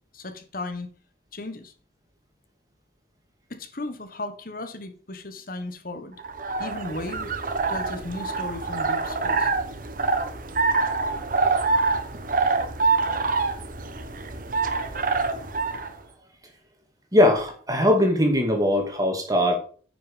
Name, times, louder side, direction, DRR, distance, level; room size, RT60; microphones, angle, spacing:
voice 1, 0.1-0.9 1.3-1.7 3.5-6.2 6.6-7.3 7.7-9.5, left 2 dB, 55° left, 1.5 m, -35 dB
sound 1, 6.2-15.9, right 4 dB, 50° right, 1.3 m, -25 dB
voice 2, 17.1-19.5, left 1 dB, 20° right, 2.4 m, -20 dB
9.4 x 6.4 x 5.3 m
head